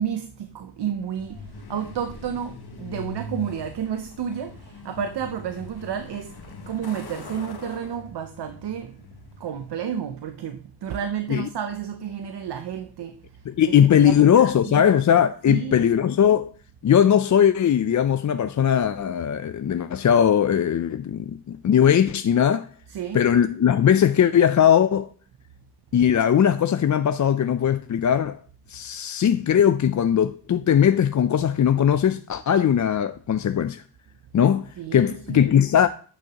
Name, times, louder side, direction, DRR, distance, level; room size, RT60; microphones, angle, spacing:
voice 1, 0.0-6.4 6.6-9.1 9.4-13.8 14.0-14.9 15.5-15.9 22.9-23.2 34.8-35.5, right 8 dB, 80° right, 0.7 m, -31 dB
Truck, 1.2-9.9, left 3 dB, 70° left, 1.4 m, -41 dB
voice 2, 13.5-16.5 16.8-22.7 23.1-25.1 25.9-28.4 28.7-33.8 34.3-35.9, left 9 dB, 50° left, 0.5 m, -19 dB
10.5 x 6.2 x 2.9 m
cardioid pair, 55°, 40 cm